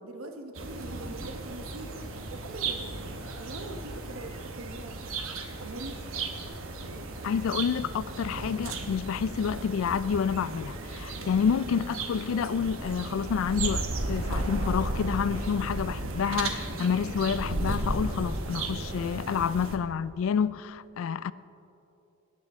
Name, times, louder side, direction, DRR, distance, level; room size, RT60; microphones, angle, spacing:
voice 1, 0.0-3.0 3.4-5.0 5.6-6.1 6.8-7.4 11.1-11.4, right 2 dB, 90° right, 1.1 m, -43 dB
sound 1, 0.6-19.8, right 2 dB, 70° right, 1.0 m, -34 dB
voice 2, 7.2-21.3, left 7 dB, 70° left, 0.3 m, -29 dB
17.0 x 9.4 x 3.6 m
head